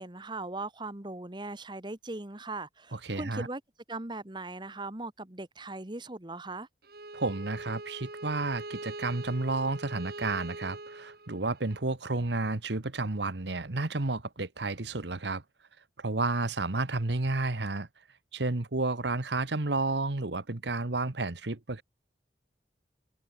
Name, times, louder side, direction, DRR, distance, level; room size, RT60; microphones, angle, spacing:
voice 1, 0.0-3.6 3.9-6.7, right 2 dB, 25° right, 1.5 m, -39 dB
voice 2, 2.9-3.5 7.1-15.4 16.0-17.9 18.3-21.8, right 2 dB, 75° right, 1.4 m, -31 dB
Bowed string instrument, 6.8-11.8, right 2 dB, 55° right, 2.3 m, -43 dB
head